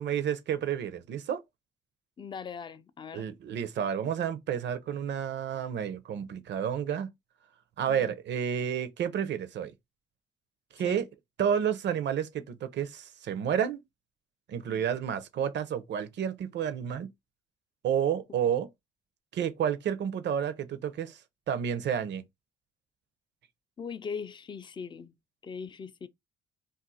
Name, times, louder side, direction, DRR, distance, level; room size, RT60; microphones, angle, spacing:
voice 1, 0.0-1.4 3.1-7.1 7.8-9.7 10.7-11.1 11.4-13.8 14.5-17.1 17.8-18.7 19.3-21.2 21.5-22.2, right 8 dB, 65° right, 0.6 m, -30 dB
voice 2, 2.2-3.3 7.9-8.2 10.8-11.0 14.7-14.9 23.8-25.1 25.4-26.1, left 6 dB, 25° left, 0.3 m, -40 dB
2.5 x 2.3 x 3.9 m
cardioid pair, 90°, 20 cm